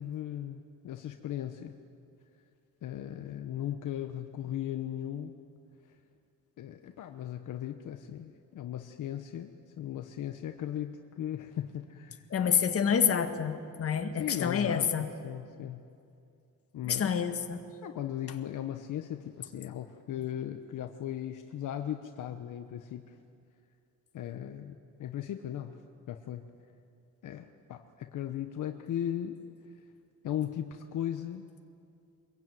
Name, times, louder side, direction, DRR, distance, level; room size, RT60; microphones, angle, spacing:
voice 1, 0.0-1.8 2.8-5.3 5.8-6.0 6.6-12.3 14.2-15.8 16.7-17.1 17.8-23.2 24.1-25.8 26.1-26.4 27.2-29.4 30.2-31.5, left 11 dB, 65° left, 6 dB, 1.1 m, -37 dB
voice 2, 12.3-15.1 16.9-17.6, left 7 dB, 45° left, 6 dB, 1.9 m, -28 dB
25.0 x 22.0 x 9.3 m, 2.4 s
cardioid pair, 160°, 33 cm